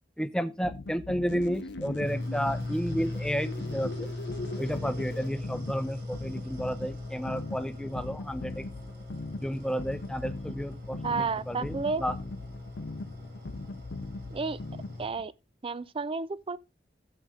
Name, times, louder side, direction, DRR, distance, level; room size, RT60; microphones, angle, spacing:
voice 1, 0.2-4.1 4.6-8.7 9.3-12.1, equal, 5° left, 0.7 m, -32 dB
sound 1, 0.6-15.3, left 2 dB, 90° left, 0.6 m, -41 dB
sound 2, 1.3-5.3, left 2 dB, 75° left, 1.0 m, -42 dB
sound 3, 2.0-15.1, left 2 dB, 65° right, 4.1 m, -39 dB
voice 2, 11.0-12.0 14.3-14.6 15.0-15.3 15.6-16.6, right 4 dB, 30° right, 0.4 m, -31 dB
13.0 x 7.9 x 3.7 m
head